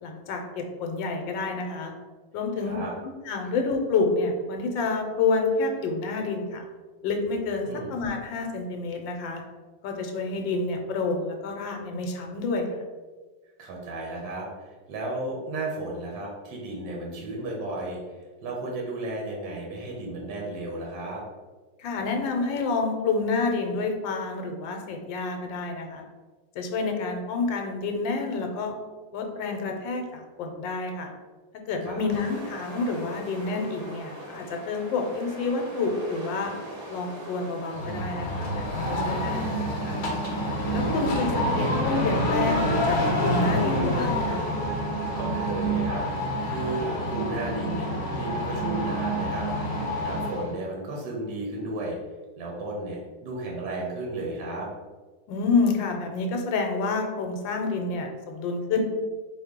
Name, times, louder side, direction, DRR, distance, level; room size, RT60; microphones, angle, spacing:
voice 1, 0.0-1.9 2.3-2.8 3.0-6.6 7.0-9.4 9.8-12.7 21.8-26.0 26.5-28.7 29.1-31.1 31.7-36.5 36.9-39.5 39.9-40.0 40.7-44.5 55.3-58.8, left 3 dB, 80° left, 3 dB, 1.4 m, -28 dB
voice 2, 2.6-2.9 7.7-7.9 13.6-21.2 31.8-32.1 39.2-40.0 45.2-47.9 48.1-49.5 50.0-52.0 52.4-54.7, right 2 dB, 70° right, -2 dB, 1.3 m, -34 dB
sound 1, 32.1-43.8, right 1 dB, 50° right, 1.5 m, -42 dB
sound 2, 37.7-50.5, equal, 50° left, 1.1 m, -27 dB
4.0 x 3.1 x 3.6 m, 1.3 s
omnidirectional pair, 2.0 m